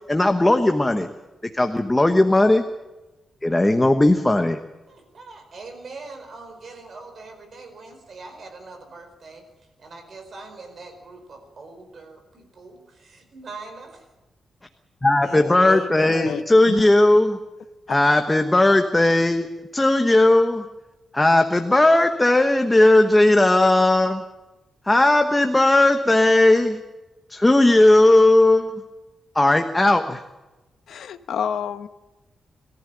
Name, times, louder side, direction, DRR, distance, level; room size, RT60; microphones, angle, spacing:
voice 1, 0.1-1.1 1.5-2.6 3.4-4.6 15.0-17.4 17.9-19.5 19.7-20.6 21.1-24.2 24.9-26.8 27.3-28.8 29.3-30.2, left 2 dB, 10° left, 6 dB, 1.1 m, -17 dB
voice 2, 4.9-14.1, right 3 dB, 50° right, 5 dB, 4.7 m, -42 dB
voice 3, 15.2-16.9 17.9-18.0 30.9-31.9, left 8 dB, 90° left, 10 dB, 1.1 m, -30 dB
22.5 x 14.0 x 9.1 m, 1.1 s
wide cardioid pair, 150°, 0 cm